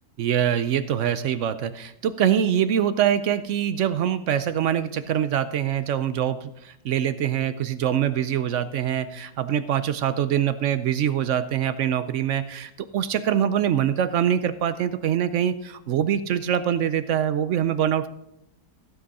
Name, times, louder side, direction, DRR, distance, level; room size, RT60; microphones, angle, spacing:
voice 1, 0.2-18.1, right 9 dB, 65° right, 13 dB, 0.8 m, -24 dB
15.5 x 7.7 x 4.1 m, 0.81 s
omnidirectional pair, 1.7 m